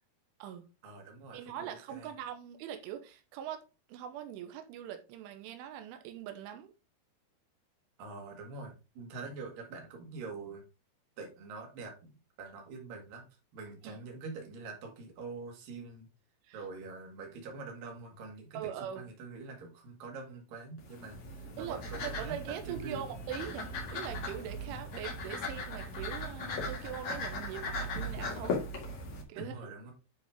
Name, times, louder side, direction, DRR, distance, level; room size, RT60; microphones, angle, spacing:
voice 1, 0.8-2.1 8.0-10.6 11.2-13.2 13.5-16.1 16.5-23.1 29.1-29.9, right 3 dB, 55° right, 3.3 m, -45 dB
voice 2, 1.3-3.6 3.9-6.7 13.8-14.0 16.4-16.6 18.5-19.1 21.6-28.6 29.3-29.5, right 10 dB, 90° right, 3.3 m, -42 dB
sound 1, 20.8-29.2, left 2 dB, 50° left, 2.3 m, -38 dB
10.0 x 4.5 x 3.6 m
omnidirectional pair, 5.5 m